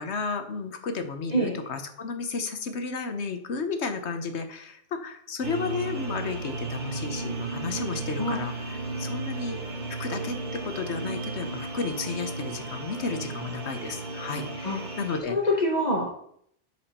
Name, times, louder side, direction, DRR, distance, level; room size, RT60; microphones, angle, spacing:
voice 1, 0.0-9.6 10.0-15.4, left 4 dB, 70° left, 7 dB, 1.2 m, -33 dB
sound 1, 5.4-15.2, right 3 dB, 40° right, 1.4 m, -34 dB
voice 2, 15.3-16.1, left 1 dB, 35° left, -1 dB, 1.4 m, -25 dB
10.5 x 4.9 x 4.3 m, 0.68 s
omnidirectional pair, 1.2 m